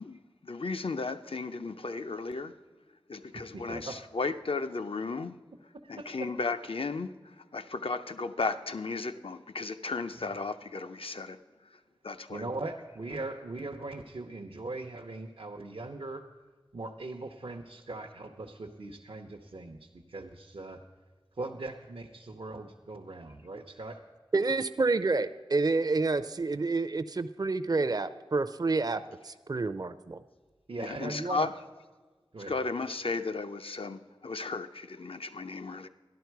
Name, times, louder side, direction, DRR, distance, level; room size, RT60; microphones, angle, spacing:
voice 1, 0.0-2.5 3.1-5.4 5.9-11.4 12.0-12.5 30.8-31.5 32.5-35.9, left 3 dB, 80° left, 0.5 m, -35 dB
voice 2, 3.3-4.0 5.8-6.3 12.3-16.2 16.7-20.8 21.4-24.0 30.7-31.5 32.3-32.5, right 2 dB, 85° right, 0.7 m, -40 dB
voice 3, 24.3-30.2, right 3 dB, 45° right, 0.4 m, -29 dB
12.5 x 11.0 x 4.6 m
wide cardioid pair, 50°, 9 cm